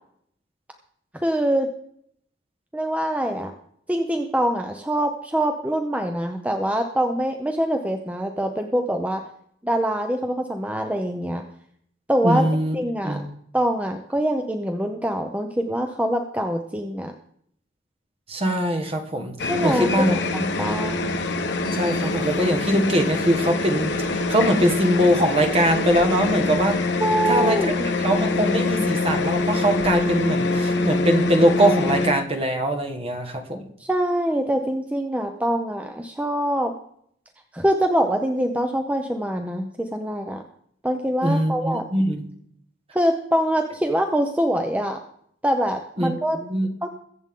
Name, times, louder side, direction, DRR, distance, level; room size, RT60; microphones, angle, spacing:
voice 1, 1.1-1.7 2.7-3.5 3.9-9.2 9.6-11.4 12.1-12.5 12.7-13.2 13.5-17.1 19.5-21.0 27.0-27.9 33.8-36.7 37.5-40.4 40.8-41.8 42.9-45.0 45.4-46.4 46.8-46.9, right 1 dB, 10° right, 5 dB, 0.7 m, -24 dB
voice 2, 12.2-12.8 13.0-13.3 18.3-20.2 21.7-26.8 27.3-27.6 28.0-33.7 41.2-42.3 46.0-46.7, equal, 35° right, 4 dB, 1.6 m, -22 dB
sound 1, 19.4-32.1, left 3 dB, 65° left, 1.2 m, -24 dB
22.0 x 8.0 x 3.7 m, 0.68 s
head